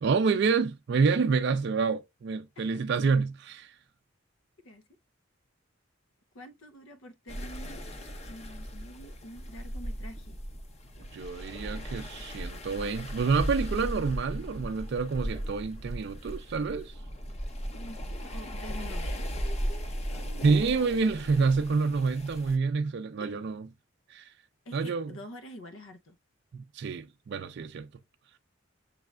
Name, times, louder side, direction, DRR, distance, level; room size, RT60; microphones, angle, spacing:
voice 1, 0.0-3.7 11.1-16.9 20.4-23.7 24.1-24.3 24.7-25.1 26.5-27.9, right 4 dB, 60° right, 0.4 m, -28 dB
voice 2, 6.3-7.8 8.3-10.4 17.7-18.0 18.3-21.3 23.2-23.4 24.7-26.2, equal, 90° left, 0.7 m, -47 dB
sound 1, 7.3-22.6, equal, 35° left, 0.6 m, -37 dB
6.7 x 3.2 x 2.3 m
head